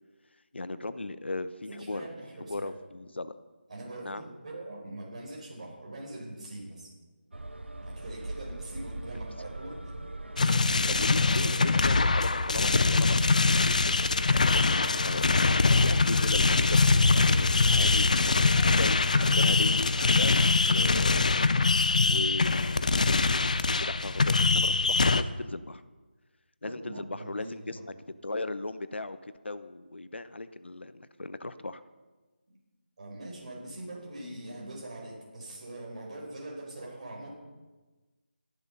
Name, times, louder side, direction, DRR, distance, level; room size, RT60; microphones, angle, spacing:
voice 1, 0.5-2.1 2.5-3.4 4.0-4.2 11.0-21.4 22.0-25.8 26.6-27.8 28.2-31.8, left 2 dB, 80° left, 12 dB, 0.9 m, -37 dB
voice 2, 1.7-2.7 3.7-6.9 7.8-9.9 10.4-12.2 26.6-27.8 33.0-37.3, right 1 dB, 35° right, -2 dB, 4.6 m, -42 dB
sound 1, 7.3-24.1, right 1 dB, 85° right, 1.4 m, -43 dB
sound 2, 10.4-25.2, left 3 dB, 45° left, 0.6 m, -23 dB
Fowl, 15.1-20.3, equal, 5° left, 2.7 m, -47 dB
13.0 x 11.0 x 5.5 m, 1.2 s
figure-of-eight pair, 170°, 6 cm